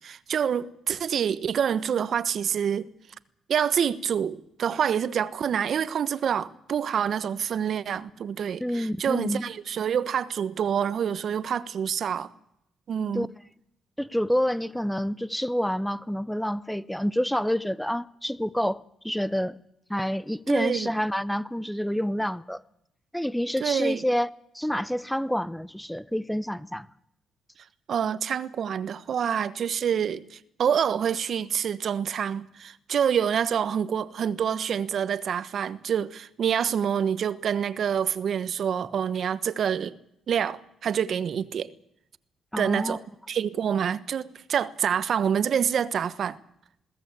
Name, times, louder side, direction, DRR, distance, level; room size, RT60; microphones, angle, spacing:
voice 1, 0.0-2.9 3.5-12.3 12.9-13.3 20.5-20.9 23.6-24.0 27.9-40.0 40.3-41.7 42.6-43.0 43.3-46.4, right 8 dB, 60° right, 1.2 m, -27 dB
voice 2, 8.6-9.5 13.1-13.3 14.0-19.6 19.9-22.6 23.1-24.3 24.5-26.9 42.5-43.0, equal, 5° left, 0.8 m, -28 dB
21.5 x 17.0 x 8.3 m
cardioid pair, 90°, 0 cm